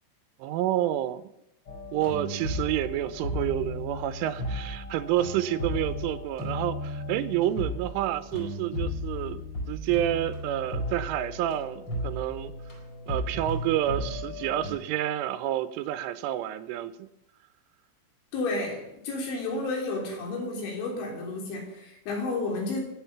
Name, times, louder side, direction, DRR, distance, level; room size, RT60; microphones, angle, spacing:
voice 1, 0.4-1.3 1.9-12.5 13.1-17.1, right 13 dB, 90° right, 12 dB, 3.3 m, -29 dB
sound 1, 1.7-14.7, left 1 dB, 30° left, 5.8 m, -35 dB
voice 2, 18.3-22.8, left 2 dB, 75° left, 0 dB, 5.7 m, -31 dB
23.5 x 9.3 x 5.9 m, 0.87 s
omnidirectional pair, 5.5 m